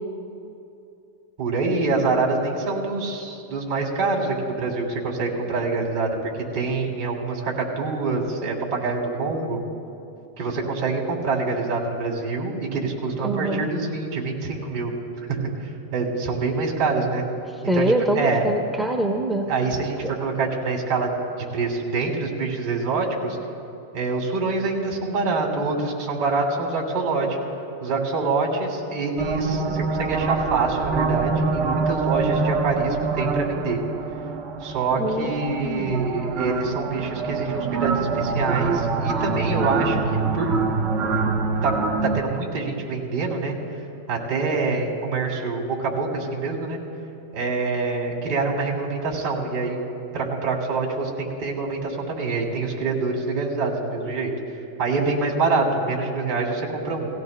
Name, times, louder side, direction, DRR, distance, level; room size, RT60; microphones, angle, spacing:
voice 1, 1.4-9.6 10.4-14.9 15.3-17.2 17.7-17.9 18.1-18.4 19.5-21.1 21.5-23.4 23.9-27.4 27.8-33.8 34.6-40.0 40.3-40.5 41.6-41.7 42.0-43.5 44.1-46.8 47.3-49.8 50.1-54.3 54.8-57.1, right 3 dB, 65° right, -1 dB, 3.0 m, -25 dB
voice 2, 13.2-13.7 17.7-19.5 20.0-20.1 35.0-36.0, right 1 dB, 10° right, 2 dB, 0.8 m, -24 dB
sound 1, 29.2-42.2, right 4 dB, 35° right, 0.8 m, -25 dB
17.5 x 17.0 x 2.2 m, 2.7 s
hypercardioid pair, 120°, 0 cm